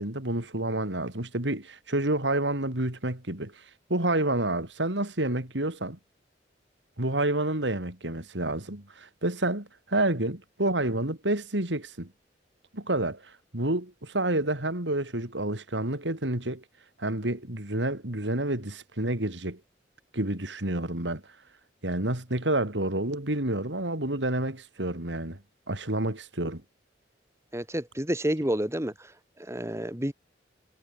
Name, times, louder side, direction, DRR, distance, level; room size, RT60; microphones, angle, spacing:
voice 1, 0.0-3.5 3.9-6.0 7.0-12.1 12.7-16.6 17.0-19.6 20.1-21.2 21.8-25.4 25.7-26.6, right 1 dB, 85° right, 4.1 m, -29 dB
voice 2, 27.5-29.1 29.4-30.1, equal, 15° right, 2.5 m, -29 dB
head